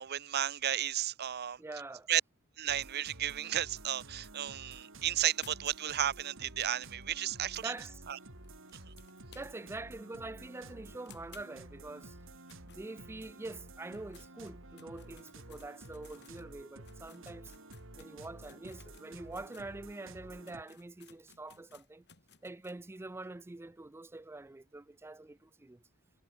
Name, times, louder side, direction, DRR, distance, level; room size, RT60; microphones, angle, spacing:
voice 1, 0.0-1.6 2.1-2.2 2.6-7.7 8.1-8.2, right 11 dB, 50° right, 0.6 m, -33 dB
voice 2, 1.6-2.1 7.6-8.0 9.3-12.2 12.6-17.5 18.0-22.0 22.4-25.8, right 2 dB, 10° right, 0.4 m, -45 dB
sound 1, 2.7-20.6, right 2 dB, 65° right, 4.3 m, -52 dB
sound 2, 5.4-9.8 10.1-10.2 10.5-10.6 11.1-13.4 13.8-19.7 20.2-20.3 20.4-22.8, left 8 dB, 55° left, 6.6 m, -61 dB
head